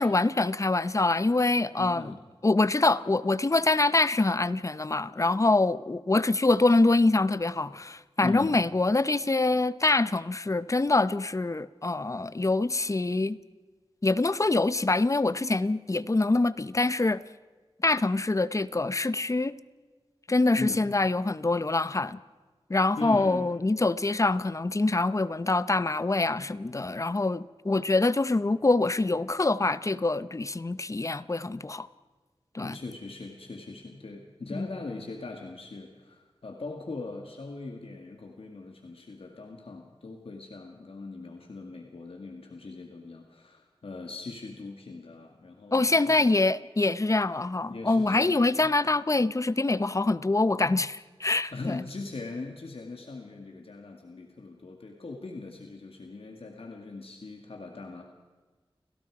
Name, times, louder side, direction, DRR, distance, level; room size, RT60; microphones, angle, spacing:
voice 1, 0.0-2.1 2.4-13.4 14.0-17.2 17.8-19.5 20.3-22.2 22.7-31.9 32.5-32.8 34.5-34.7 45.7-51.8, left 2 dB, 30° left, 0.7 m, -25 dB
voice 2, 1.8-2.2 8.2-8.6 20.6-20.8 23.0-23.5 32.6-46.2 47.7-48.7 51.5-58.0, left 3 dB, 75° left, 2.1 m, -40 dB
30.0 x 18.0 x 4.9 m
wide cardioid pair, 80°, 10 cm